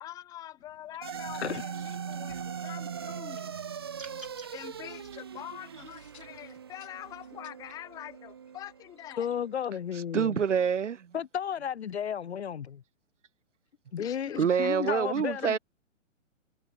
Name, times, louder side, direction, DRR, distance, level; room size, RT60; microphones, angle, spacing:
voice 1, 0.0-3.6 4.5-9.3 14.0-15.0, left 12 dB, 10° left, 0.7 m, -45 dB
sound 1, 0.6-5.2, left 3 dB, 75° left, 7.2 m, -63 dB
sound 2, 1.0-9.5, right 7 dB, 20° right, 0.4 m, -41 dB
sound 3, 3.9-4.5, right 1 dB, 85° right, 6.6 m, -46 dB
voice 2, 9.2-10.4 11.1-12.8 13.9-15.6, left 8 dB, 55° left, 0.8 m, -33 dB
voice 3, 10.1-11.1 14.4-15.6, right 7 dB, 70° right, 0.8 m, -26 dB
figure-of-eight pair, 125°, 38 cm